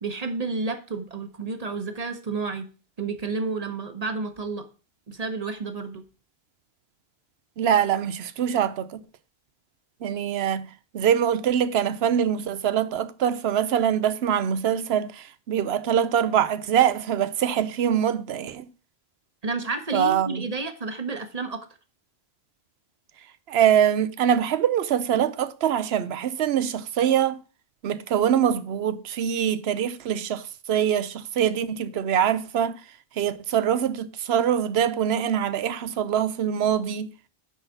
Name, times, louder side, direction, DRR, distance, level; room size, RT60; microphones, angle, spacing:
voice 1, 0.0-2.7 3.0-4.7 5.1-6.1 19.4-21.7, right 3 dB, 40° right, 1.1 m, -30 dB
voice 2, 7.6-9.0 10.0-18.7 19.9-20.4 23.5-27.4 27.8-32.8 33.2-37.1, right 9 dB, 85° right, 0.9 m, -24 dB
9.7 x 4.0 x 5.7 m
omnidirectional pair, 1.0 m